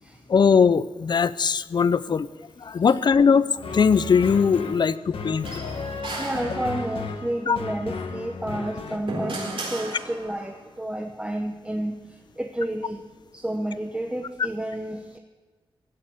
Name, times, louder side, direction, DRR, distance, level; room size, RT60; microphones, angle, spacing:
voice 1, 0.3-2.3 2.6-5.5 6.1-6.2 7.5-7.6, left 6 dB, 55° left, 16 dB, 0.6 m, -20 dB
sound 1, 3.6-9.0, left 4 dB, 80° left, 1.4 m, -34 dB
sound 2, 5.5-7.2 8.5-10.6, right 2 dB, 70° right, 4.1 m, -35 dB
voice 2, 5.9-13.0 13.3-15.2, right 1 dB, 10° right, 3 dB, 0.9 m, -31 dB
16.0 x 6.7 x 9.7 m, 1.3 s
wide cardioid pair, 110°, 9 cm